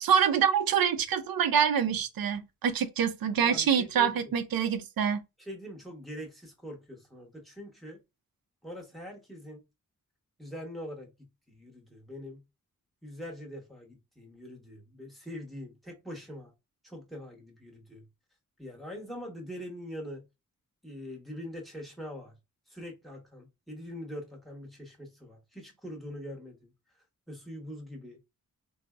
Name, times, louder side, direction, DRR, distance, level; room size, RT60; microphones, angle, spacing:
voice 1, 0.0-5.2, right 7 dB, 85° right, 0.5 m, -26 dB
voice 2, 3.4-4.3 5.4-8.0 8.6-9.6 10.4-11.1 11.5-12.4 13.0-16.5 16.8-18.0 18.6-20.2 20.8-22.3 22.7-26.7 27.3-28.2, equal, ahead, 0.9 m, -43 dB
3.8 x 2.0 x 2.3 m
wide cardioid pair, 150°, 34 cm